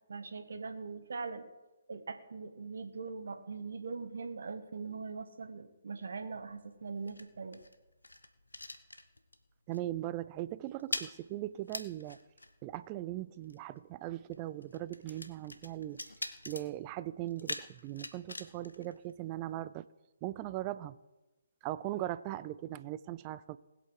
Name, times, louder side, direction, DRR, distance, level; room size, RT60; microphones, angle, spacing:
voice 1, 0.1-1.5 1.9-7.6, right 4 dB, 60° right, 7 dB, 1.3 m, -41 dB
sound 1, 6.1-9.5 9.7-10.0 10.3-19.7, left 2 dB, 85° left, 1.1 m, -45 dB
voice 2, 9.7-12.2 12.6-16.0 16.5-19.8 20.2-21.0 21.6-23.6, right 15 dB, 25° right, 16 dB, 0.5 m, -39 dB
20.0 x 8.2 x 4.7 m, 1.1 s
figure-of-eight pair, 140°, 0 cm